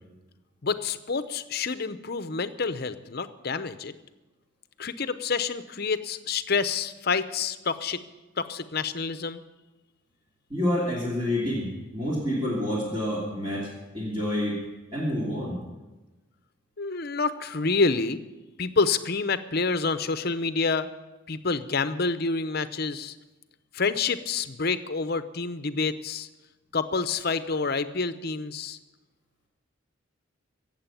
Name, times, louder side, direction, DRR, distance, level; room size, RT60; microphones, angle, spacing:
voice 1, 0.6-3.9 4.8-8.0 8.4-9.4 16.8-18.2 18.6-20.9 21.3-23.2 23.7-26.3 26.7-28.8, left 4 dB, 50° left, 12 dB, 0.7 m, -28 dB
voice 2, 10.5-14.6 14.9-15.6, left 1 dB, 25° right, -5 dB, 2.8 m, -28 dB
16.0 x 7.6 x 9.1 m, 1.1 s
head